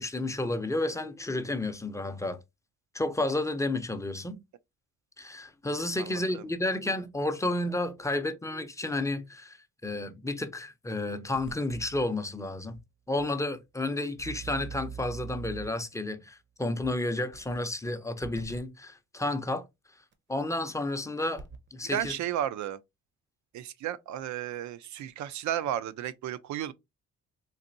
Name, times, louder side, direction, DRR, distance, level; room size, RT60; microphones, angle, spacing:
voice 1, 0.0-2.4 2.9-4.4 5.2-9.6 9.8-12.8 13.1-19.6 20.3-21.4 21.7-22.1, left 2 dB, 10° left, 0.5 m, -31 dB
voice 2, 6.0-6.4 21.9-22.8 23.5-26.7, right 11 dB, 70° right, 0.5 m, -33 dB
sound 1, 11.3-12.0 12.7-12.8 13.2-13.3 14.2-15.9 16.8-16.9 17.3-17.9 18.2-18.6 20.1-20.2 21.2-21.7 22.0-22.1, right 6 dB, 40° right, 0.7 m, -42 dB
4.0 x 2.6 x 2.5 m
cardioid pair, 90°, 30 cm